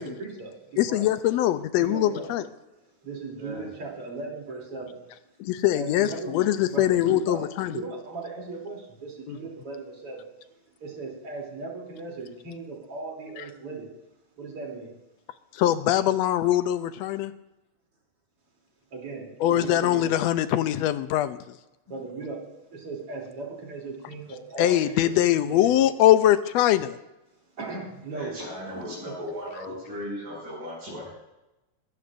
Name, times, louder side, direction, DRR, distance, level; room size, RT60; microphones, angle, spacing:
voice 1, 0.0-1.1 1.8-2.3 3.0-5.0 5.7-6.4 6.7-10.3 10.8-13.9 14.4-14.9 18.9-20.1 21.9-25.7 27.6-28.4 29.0-29.1, right 3 dB, 50° right, -1 dB, 4.0 m, -37 dB
voice 2, 0.8-2.4 5.4-7.8 9.3-9.4 15.5-17.3 19.4-21.6 24.6-27.0, left 12 dB, 75° left, 12 dB, 1.7 m, -22 dB
voice 3, 3.3-3.6 28.1-31.1, left 1 dB, 75° right, -8 dB, 8.0 m, -36 dB
21.0 x 15.5 x 2.6 m, 0.98 s
omnidirectional pair, 3.4 m